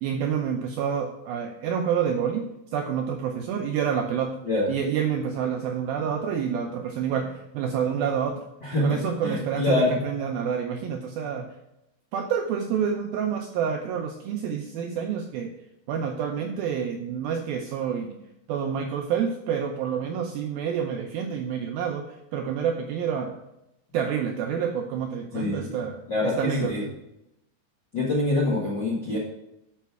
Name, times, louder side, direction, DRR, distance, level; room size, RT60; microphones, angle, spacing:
voice 1, 0.0-2.4 2.7-4.4 4.7-8.4 8.8-11.5 12.1-15.5 15.9-18.2 18.5-23.4 23.9-26.7, right 7 dB, 80° right, 4 dB, 2.1 m, -28 dB
voice 2, 8.6-9.9 25.3-25.8 26.1-26.9 27.9-29.2, left 2 dB, 50° left, -4 dB, 1.3 m, -25 dB
11.5 x 5.9 x 4.7 m, 0.86 s
omnidirectional pair, 5.0 m